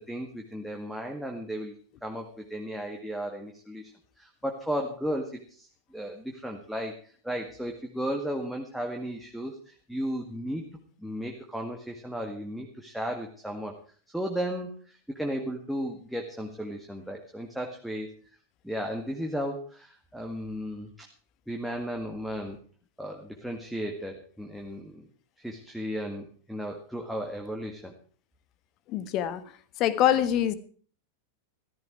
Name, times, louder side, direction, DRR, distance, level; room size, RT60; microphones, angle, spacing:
voice 1, 0.1-1.7 2.0-3.9 4.2-10.6 11.0-13.8 14.1-18.1 18.6-21.1 21.5-22.6 23.0-25.1 25.4-27.9, equal, ahead, 1 dB, 2.0 m, -35 dB
voice 2, 28.9-29.4 29.8-30.5, left 11 dB, 35° left, 14 dB, 1.4 m, -24 dB
15.0 x 14.5 x 4.7 m, 0.43 s
figure-of-eight pair, 90°, 0 cm